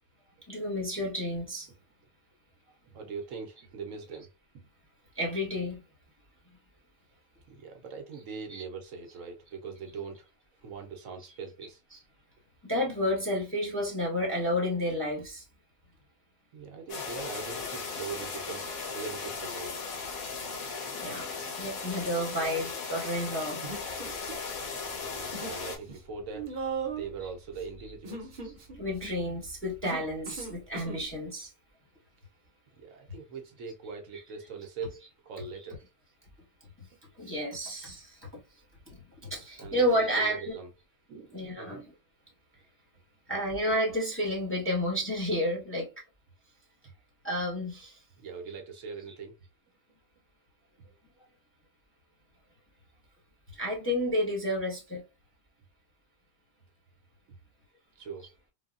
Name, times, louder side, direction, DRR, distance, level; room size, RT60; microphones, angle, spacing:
voice 1, 0.5-1.7 5.1-5.8 8.5-8.6 11.2-11.3 11.9-12.0 12.6-15.4 18.0-18.1 20.9-21.3 21.6-23.6 25.6-25.7 27.2-27.3 27.8-27.9 28.7-31.5 34.1-34.2 34.6-34.7 35.4-35.7 37.2-38.4 38.9-40.5 41.3-41.9 43.3-45.9 47.2-48.0 53.5-55.0 58.2-58.3, equal, 10° left, 0.7 m, -31 dB
voice 2, 2.8-4.3 4.5-4.7 7.5-10.3 10.6-11.8 16.5-19.9 20.9-21.0 25.0-26.5 26.8-28.3 32.8-35.8 39.6-40.7 41.1-41.8 48.2-49.4 50.8-50.9 58.0-58.3, right 5 dB, 70° right, 1.0 m, -41 dB
sound 1, 16.9-25.8, left 4 dB, 80° left, 1.4 m, -37 dB
Human voice, 23.6-24.6 24.8-25.6 25.9-31.1, right 4 dB, 45° right, 0.8 m, -39 dB
3.3 x 2.2 x 2.4 m
omnidirectional pair, 1.5 m